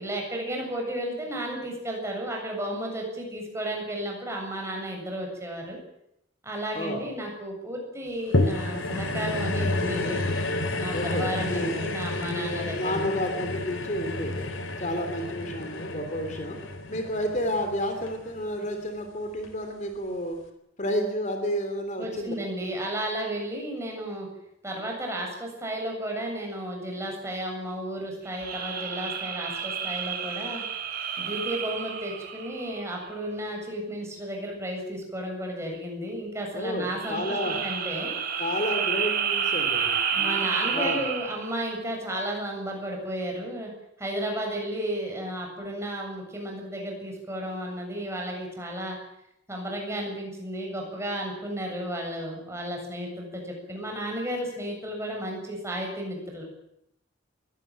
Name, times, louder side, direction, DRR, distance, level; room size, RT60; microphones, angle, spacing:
voice 1, 0.0-5.8 6.4-10.2 10.7-13.1 22.0-24.3 24.6-30.6 31.2-38.1 40.1-43.7 44.0-49.0 49.5-56.4, right 1 dB, 15° right, 1 dB, 7.6 m, -33 dB
voice 2, 6.7-7.1 10.9-11.9 12.3-16.6 16.9-20.4 20.8-22.3 36.5-37.6 38.4-41.0, equal, 40° left, 6 dB, 3.1 m, -31 dB
sound 1, 8.3-18.8 19.4-19.5, left 2 dB, 80° left, 3.3 m, -30 dB
sound 2, 28.3-33.0 36.9-41.6, right 7 dB, 50° right, 4.4 m, -30 dB
22.0 x 17.5 x 9.2 m, 0.80 s
head